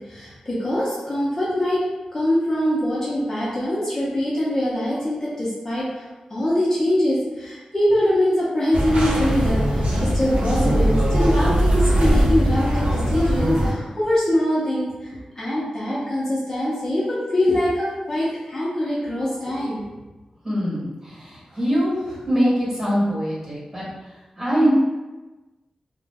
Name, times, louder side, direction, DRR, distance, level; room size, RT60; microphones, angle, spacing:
voice 1, 0.1-1.8 2.1-6.0 6.3-15.1 15.4-19.9, left 1 dB, 25° left, -8 dB, 0.6 m, -23 dB
sound 1, 8.7-13.7, equal, 90° right, 0.6 m, -20 dB
voice 2, 20.4-24.7, equal, 20° right, -8 dB, 1.2 m, -23 dB
2.4 x 2.0 x 3.4 m, 1.1 s
wide cardioid pair, 130°, 2 cm